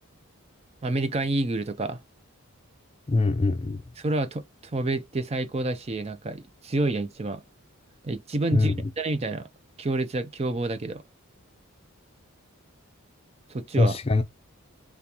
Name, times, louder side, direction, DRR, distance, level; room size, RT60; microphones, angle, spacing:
voice 1, 0.8-2.0 4.0-4.4 4.7-7.4 8.0-9.5 9.8-11.0 13.5-14.0, right 2 dB, 30° right, 0.4 m, -28 dB
voice 2, 3.1-3.8 8.5-8.9 13.8-14.2, left 3 dB, 25° left, 0.5 m, -23 dB
3.7 x 3.4 x 2.8 m
head